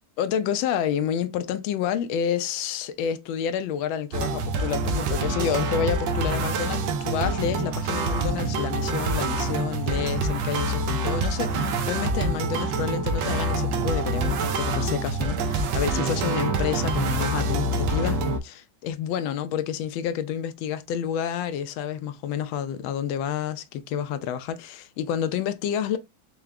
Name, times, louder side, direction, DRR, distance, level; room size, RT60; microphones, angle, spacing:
voice 1, 0.2-26.0, left 8 dB, 85° left, 1.3 m, -29 dB
sound 1, 4.1-18.4, right 2 dB, 80° right, 1.3 m, -26 dB
4.7 x 2.0 x 3.4 m
omnidirectional pair, 2.1 m